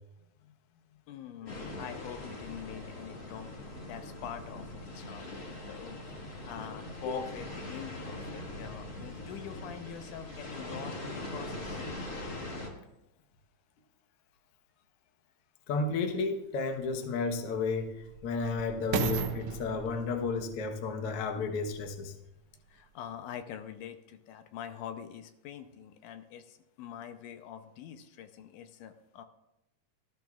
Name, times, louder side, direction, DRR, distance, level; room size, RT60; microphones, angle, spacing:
voice 1, 0.9-11.8 22.7-29.2, left 9 dB, 85° left, 8 dB, 2.1 m, -45 dB
sound 1, 1.5-12.7, left 2 dB, 35° left, 1.9 m, -42 dB
voice 2, 15.7-22.1, left 4 dB, 60° left, 3 dB, 1.6 m, -32 dB
sound 2, 15.9-16.0 16.7-22.0 22.7-22.8, right 7 dB, 90° right, 1.3 m, -37 dB
18.0 x 12.5 x 2.4 m, 0.90 s
omnidirectional pair, 3.7 m